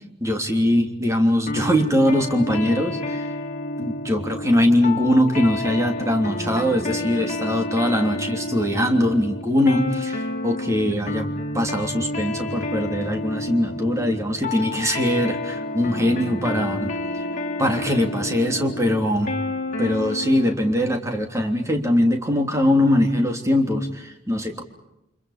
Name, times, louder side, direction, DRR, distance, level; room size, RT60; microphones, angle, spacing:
voice 1, 0.2-3.3 3.8-17.2 17.6-19.4 19.8-24.6, left 1 dB, 15° right, 3 dB, 3.3 m, -22 dB
sound 1, 1.5-20.6, left 2 dB, 40° left, 3.0 m, -30 dB
30.0 x 26.5 x 5.2 m, 0.88 s
head